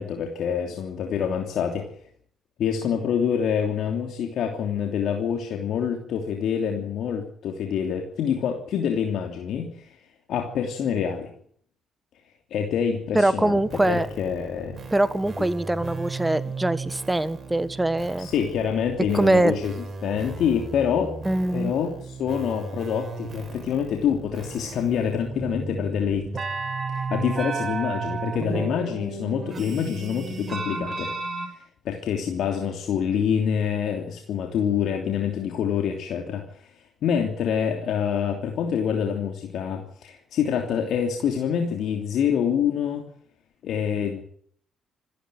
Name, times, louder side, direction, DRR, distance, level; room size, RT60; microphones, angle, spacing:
voice 1, 0.0-1.9 2.6-10.0 10.3-11.3 12.5-13.6 13.9-14.8 18.2-19.7 20.0-21.1 21.5-26.3 26.9-31.1 31.5-36.7 37.0-43.0 43.6-44.2, left 8 dB, 65° left, 3 dB, 3.0 m, -26 dB
voice 2, 13.1-14.1 14.9-18.3 19.1-19.6 21.2-21.7, right 1 dB, 15° right, 16 dB, 1.4 m, -23 dB
sound 1, 13.6-31.5, right 4 dB, 40° right, 5.5 m, -34 dB
26.5 x 12.0 x 9.4 m, 0.63 s
hypercardioid pair, 45°, 0 cm